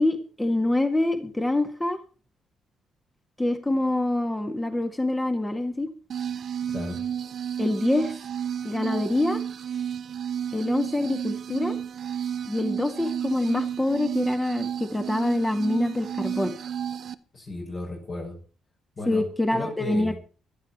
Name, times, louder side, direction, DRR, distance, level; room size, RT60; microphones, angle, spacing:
voice 1, 0.0-2.0 3.4-5.9 7.6-8.1 8.6-9.4 10.5-11.8 12.5-16.5 19.1-20.1, left 1 dB, 10° left, 7 dB, 1.8 m, -25 dB
sound 1, 6.1-17.1, right 8 dB, 60° right, 0.9 m, -32 dB
voice 2, 17.3-18.3 19.0-19.3 19.5-20.2, left 2 dB, 45° left, -2 dB, 6.1 m, -34 dB
15.5 x 12.0 x 4.3 m, 0.37 s
cardioid pair, 90°, 0 cm